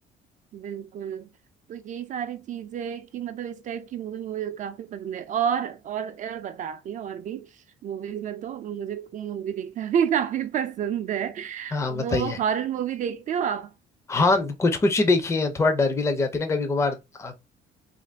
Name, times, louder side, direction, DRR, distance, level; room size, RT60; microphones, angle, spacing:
voice 1, 0.5-1.3 1.7-13.7, right 8 dB, 50° right, 0.4 m, -30 dB
voice 2, 11.7-12.4 14.1-17.4, left 3 dB, 15° left, 0.5 m, -23 dB
2.5 x 2.2 x 3.2 m
cardioid pair, 110°, 17 cm